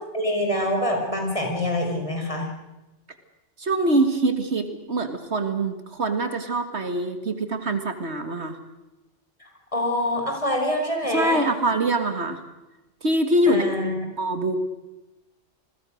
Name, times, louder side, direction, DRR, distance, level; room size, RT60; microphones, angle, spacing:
voice 1, 0.1-2.5 9.4-11.4 13.5-14.1, left 1 dB, 25° left, 1 dB, 5.2 m, -25 dB
voice 2, 3.6-8.6 11.1-12.4 13.0-14.6, right 1 dB, 60° right, 8 dB, 2.1 m, -24 dB
28.5 x 21.5 x 6.5 m, 1.0 s
omnidirectional pair, 1.3 m